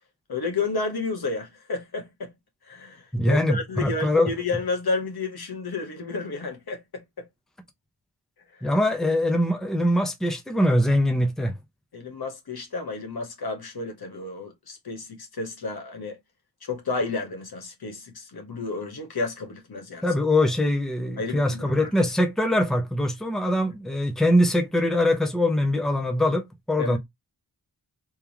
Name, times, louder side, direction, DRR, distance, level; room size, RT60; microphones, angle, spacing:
voice 1, 0.3-2.3 2.6-7.2 8.6-8.7 11.9-16.2 16.6-20.1 21.2-21.9 26.8-27.0, left 3 dB, 65° left, 1.4 m, -31 dB
voice 2, 3.1-4.3 8.6-11.5 20.0-27.0, left 1 dB, ahead, 0.8 m, -23 dB
3.6 x 3.3 x 2.9 m
wide cardioid pair, 125°, 40 cm